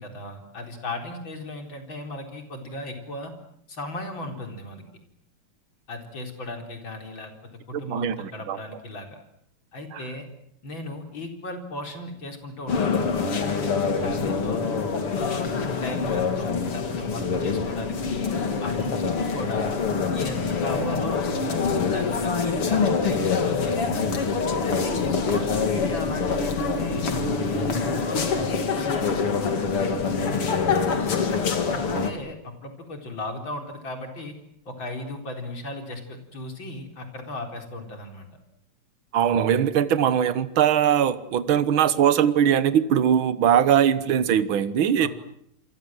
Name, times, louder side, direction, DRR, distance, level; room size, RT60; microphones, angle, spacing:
voice 1, 0.0-3.3 3.7-4.9 5.9-7.3 7.7-9.2 9.7-10.3 10.6-13.7 14.0-14.6 15.1-15.5 15.8-18.3 18.6-19.8 20.1-21.6 21.9-24.1 24.6-27.1 27.6-29.9 31.7-34.4 34.6-38.3 45.0-45.1, left 2 dB, 60° left, 4 dB, 5.0 m, -36 dB
voice 2, 7.7-8.6 9.9-10.0 31.9-32.1 39.1-45.1, right 9 dB, 65° right, 14 dB, 2.0 m, -21 dB
sound 1, 12.7-32.1, left 5 dB, 85° left, 3.4 m, -25 dB
28.0 x 24.5 x 7.7 m, 0.71 s
omnidirectional pair, 2.4 m